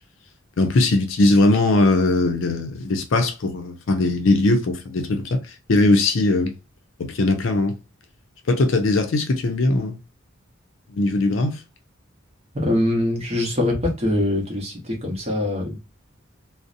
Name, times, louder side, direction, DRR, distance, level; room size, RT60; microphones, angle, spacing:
voice 1, 0.6-6.5 7.0-7.8 8.5-10.0 10.9-11.6, left 2 dB, 70° left, 0.5 m, -20 dB
voice 2, 12.5-15.8, left 1 dB, 30° right, 0.8 m, -23 dB
2.6 x 2.0 x 2.4 m
head